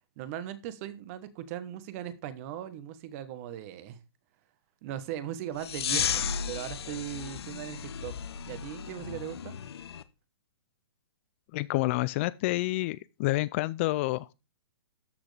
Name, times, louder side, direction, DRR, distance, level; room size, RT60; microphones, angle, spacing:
voice 1, 0.2-4.0 4.8-8.1 8.5-9.6, right 11 dB, 35° right, 1.1 m, -39 dB
sound 1, 5.6-10.0, left 7 dB, 70° left, 1.1 m, -34 dB
voice 2, 11.5-14.3, left 19 dB, 30° left, 0.4 m, -28 dB
13.0 x 6.2 x 3.4 m
hypercardioid pair, 150°, 14 cm